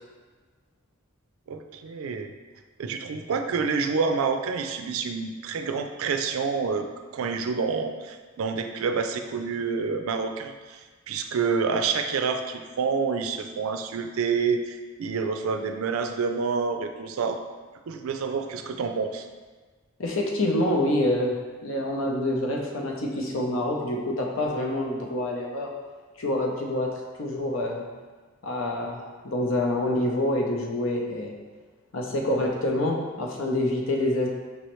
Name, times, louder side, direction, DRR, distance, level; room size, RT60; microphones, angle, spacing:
voice 1, 1.5-2.3 2.8-6.9 7.1-10.8 11.1-17.4 17.9-19.3, right 5 dB, 85° right, 6 dB, 0.4 m, -28 dB
voice 2, 20.0-21.4 21.6-25.7 26.2-26.9 27.2-27.8 28.4-31.3 31.9-34.3, left 1 dB, 70° left, 0 dB, 0.7 m, -26 dB
5.5 x 3.1 x 3.0 m, 1.4 s
head